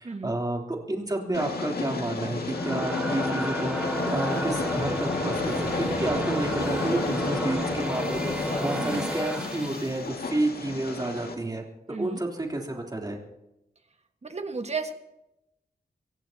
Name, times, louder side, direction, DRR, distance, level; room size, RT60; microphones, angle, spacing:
voice 1, 0.0-13.2, right 2 dB, 25° right, 0 dB, 3.3 m, -31 dB
Train, 1.3-11.3, left 3 dB, 80° left, 2.1 m, -31 dB
sound 1, 2.3-10.0, equal, 5° right, 5.3 m, -32 dB
voice 2, 8.8-9.1 11.9-12.2 14.2-14.9, right 4 dB, 45° right, 6 dB, 1.6 m, -33 dB
25.5 x 16.5 x 2.9 m, 0.89 s
wide cardioid pair, 95°, 16 cm